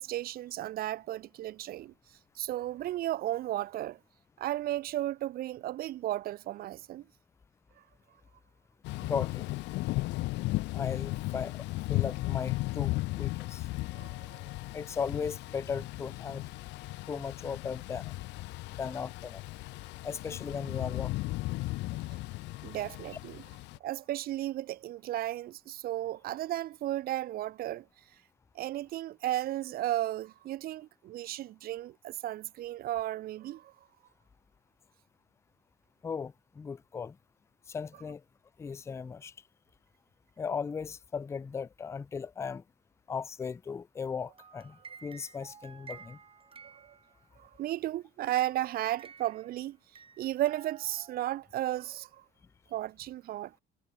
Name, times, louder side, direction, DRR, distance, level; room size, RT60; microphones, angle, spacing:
voice 1, 0.0-1.9 2.4-4.0 4.4-7.0 13.9-14.4 22.6-23.4 23.8-27.9 28.5-33.7 46.8-46.9 47.4-49.8 50.2-52.2 52.7-53.5, right 14 dB, 55° right, 0.6 m, -34 dB
Thunder / Rain, 8.8-23.8, left 20 dB, 80° left, 1.4 m, -36 dB
voice 2, 9.0-9.5 10.7-13.7 14.7-16.5 17.1-18.1 18.7-19.4 20.0-21.3 36.0-37.2 37.7-38.2 38.6-39.3 40.4-42.6 43.1-46.2, left 6 dB, 15° left, 0.3 m, -37 dB
sound 1, 44.0-47.4 48.4-49.6 49.9-51.4, right 6 dB, 30° right, 4.2 m, -53 dB
cardioid pair, 115°, 18 cm